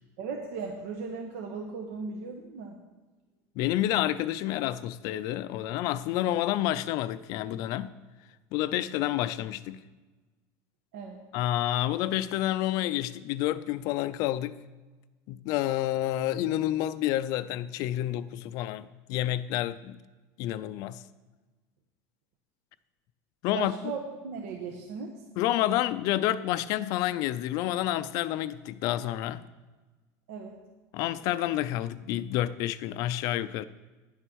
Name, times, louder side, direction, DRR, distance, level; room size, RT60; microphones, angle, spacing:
voice 1, 0.2-2.8 10.9-11.2 23.5-25.1 30.3-30.6, right 4 dB, 70° right, 1.4 m, -37 dB
voice 2, 3.6-7.9 8.5-9.8 11.3-14.6 15.3-20.0 20.4-21.0 23.4-23.7 25.4-29.4 30.9-33.6, left 13 dB, 45° left, 0.4 m, -29 dB
10.5 x 9.1 x 6.3 m
cardioid pair, 180°, 8 cm